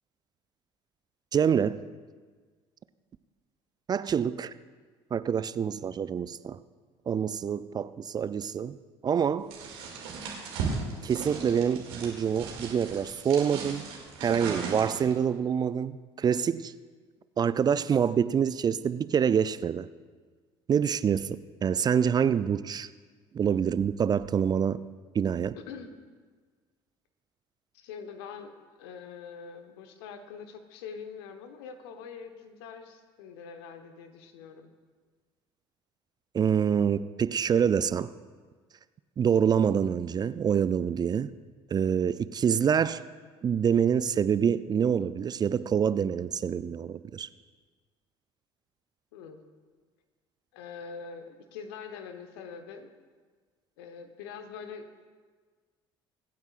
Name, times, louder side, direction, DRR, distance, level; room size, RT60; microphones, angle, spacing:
voice 1, 1.3-1.8 3.9-4.5 5.1-6.6 7.1-8.8 9.0-9.5 11.0-13.8 14.2-16.7 17.4-19.9 20.7-22.9 23.3-24.8 25.1-25.6 36.3-38.1 39.2-41.3 41.7-43.0 43.4-47.3, right 7 dB, 30° right, 16 dB, 0.4 m, -26 dB
sound 1, 9.5-15.2, right 5 dB, 70° right, 2.3 m, -37 dB
voice 2, 27.7-34.7 49.1-49.4 50.5-52.9 53.8-54.9, left 6 dB, 70° left, 7 dB, 1.0 m, -44 dB
24.0 x 9.2 x 2.5 m, 1.5 s
hypercardioid pair, 60°, 13 cm